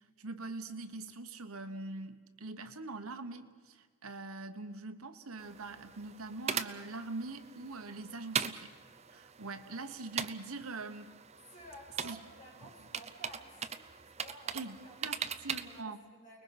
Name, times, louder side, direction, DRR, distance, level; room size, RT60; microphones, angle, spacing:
voice 1, 0.2-8.7 9.1-11.1 12.0-12.2 14.5-14.8 15.0-16.0, right 3 dB, 85° right, 9 dB, 1.4 m, -43 dB
sound 1, 5.4-15.8, right 7 dB, 30° right, 0.7 m, -41 dB
voice 2, 11.5-16.4, equal, 35° left, -3 dB, 6.8 m, -54 dB
29.5 x 21.0 x 6.0 m, 1.6 s
head